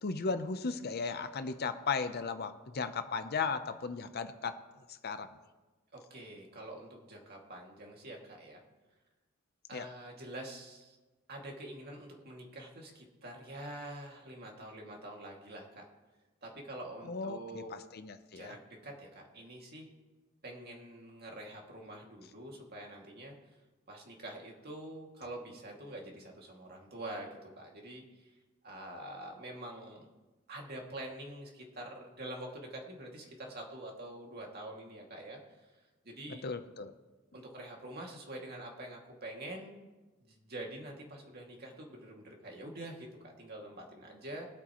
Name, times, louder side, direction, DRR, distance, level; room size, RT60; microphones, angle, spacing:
voice 1, 0.0-4.6 4.9-5.3 9.7-9.9 17.1-17.6 17.9-18.6 36.3-36.9, left 4 dB, 50° left, 10 dB, 0.7 m, -36 dB
voice 2, 5.9-8.6 9.7-11.0 11.3-15.8 16.4-17.7 18.3-19.9 20.4-23.3 23.9-28.3 28.6-30.1 30.5-35.7 36.0-36.5 37.3-39.8 40.2-44.5, right 1 dB, 50° right, 0 dB, 2.3 m, -46 dB
21.5 x 8.2 x 3.0 m, 1.2 s
head